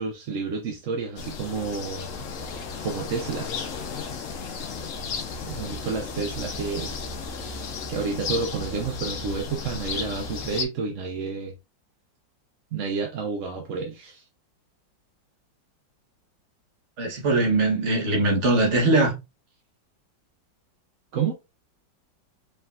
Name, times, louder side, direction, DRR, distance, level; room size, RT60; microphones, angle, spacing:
voice 1, 0.0-2.1 2.8-3.6 5.5-6.9 7.9-11.5 12.7-14.2 21.1-21.4, right 5 dB, 60° right, 0.8 m, -30 dB
sound 1, 1.2-10.6, left 4 dB, 60° left, 0.9 m, -34 dB
voice 2, 17.0-19.2, right 2 dB, 45° right, 1.3 m, -21 dB
4.8 x 3.4 x 2.4 m
omnidirectional pair, 2.0 m